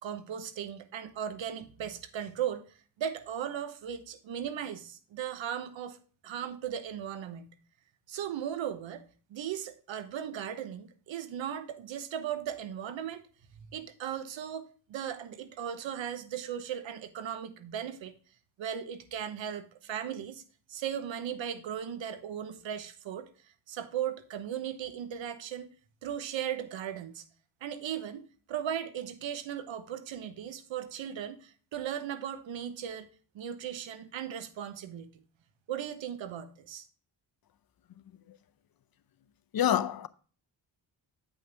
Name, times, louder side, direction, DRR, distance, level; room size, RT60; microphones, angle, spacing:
voice 1, 0.0-6.0 6.2-7.5 8.1-9.0 9.3-13.2 13.6-18.1 18.6-20.4 20.7-23.3 23.7-25.7 26.0-27.2 27.6-33.1 33.3-35.1 35.7-36.8, right 9 dB, 85° right, 1.0 m, -37 dB
voice 2, 39.5-40.1, left 10 dB, 55° left, 0.7 m, -28 dB
8.5 x 5.4 x 3.4 m
cardioid pair, 80°, 45 cm